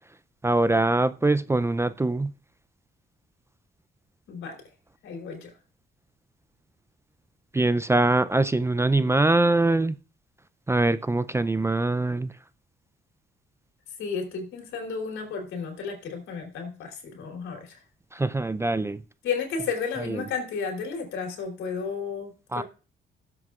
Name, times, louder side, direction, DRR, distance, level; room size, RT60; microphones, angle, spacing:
voice 1, 0.4-2.3 7.5-10.0 10.7-12.3 18.1-19.0 20.0-20.2 22.5-22.6, right 2 dB, 15° right, 0.4 m, -23 dB
voice 2, 5.0-5.5 14.0-17.8 19.2-22.6, left 5 dB, 85° left, 3.3 m, -33 dB
17.0 x 7.7 x 2.4 m
cardioid pair, 90°, 20 cm